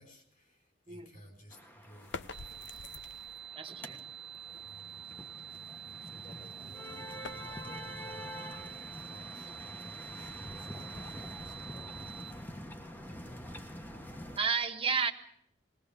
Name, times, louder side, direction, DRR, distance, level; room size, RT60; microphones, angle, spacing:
voice 1, 0.0-2.8 4.6-4.9 6.0-8.2 8.9-11.9, right 1 dB, 45° left, 5 dB, 4.2 m, -56 dB
voice 2, 0.9-1.2 3.5-4.0 14.4-15.1, right 5 dB, 30° right, 4 dB, 1.4 m, -32 dB
sound 1, 1.5-14.4, equal, 10° left, 1.3 m, -46 dB
sound 2, 1.9-3.5 6.2-9.2, left 4 dB, 70° left, 0.7 m, -49 dB
sound 3, 2.3-12.3, right 9 dB, 65° right, 1.3 m, -47 dB
21.0 x 18.0 x 7.0 m, 0.69 s
head